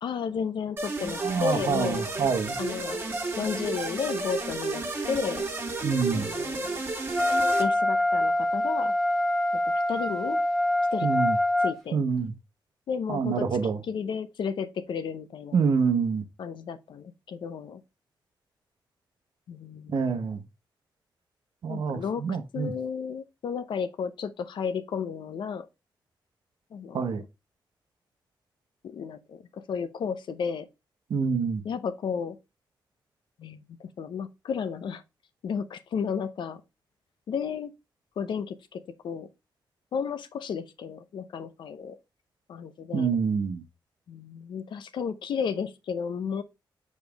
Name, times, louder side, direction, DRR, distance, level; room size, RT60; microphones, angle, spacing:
voice 1, 0.0-2.0 2.6-3.0 3.4-5.5 6.1-6.8 7.6-8.9 9.9-10.4 10.9-11.1 11.6-12.0 12.9-13.5 13.9-15.6 16.4-17.8 19.5-20.3 21.7-25.7 26.7-27.0 28.8-30.7 31.6-32.4 33.4-35.0 35.4-36.6 37.3-37.7 38.2-39.3 39.9-42.0 42.5-43.1 44.1-46.4, left 6 dB, 75° left, 0.7 m, -33 dB
sound 1, 0.8-7.6, right 3 dB, 25° right, 1.5 m, -32 dB
voice 2, 1.2-2.6 5.8-6.3 11.0-11.4 11.9-12.3 13.1-13.8 15.5-16.2 19.9-20.4 21.6-22.7 26.9-27.2 31.1-31.6 42.9-43.6, right 5 dB, 70° right, 0.9 m, -26 dB
Wind instrument woodwind instrument, 7.1-11.8, left 1 dB, ahead, 1.1 m, -25 dB
7.1 x 4.2 x 3.4 m
wide cardioid pair, 165°, 8 cm